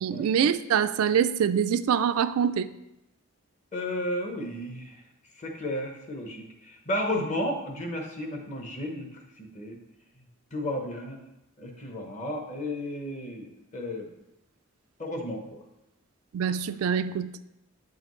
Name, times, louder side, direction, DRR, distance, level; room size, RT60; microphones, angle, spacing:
voice 1, 0.0-2.7 7.2-7.3 16.3-17.4, right 7 dB, 85° right, 12 dB, 0.3 m, -25 dB
voice 2, 3.7-5.0 5.4-9.8 10.5-11.2 11.6-14.1 15.0-15.6, left 1 dB, 35° left, 2 dB, 0.9 m, -33 dB
8.2 x 4.9 x 3.1 m, 0.90 s
head